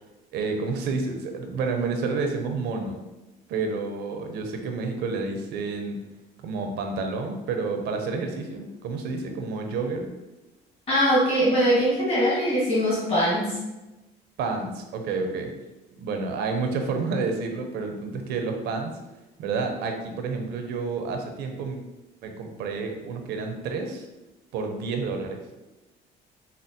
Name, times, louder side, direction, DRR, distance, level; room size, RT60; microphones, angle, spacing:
voice 1, 0.3-3.0 3.5-6.0 6.4-10.1 14.4-15.5 16.0-19.0 19.4-21.8 22.2-24.0 24.5-25.4, right 4 dB, 80° right, 4 dB, 0.5 m, -29 dB
voice 2, 10.9-13.5, equal, 35° left, -8 dB, 1.4 m, -21 dB
4.3 x 2.0 x 2.6 m, 1.0 s
cardioid pair, 110°, 17 cm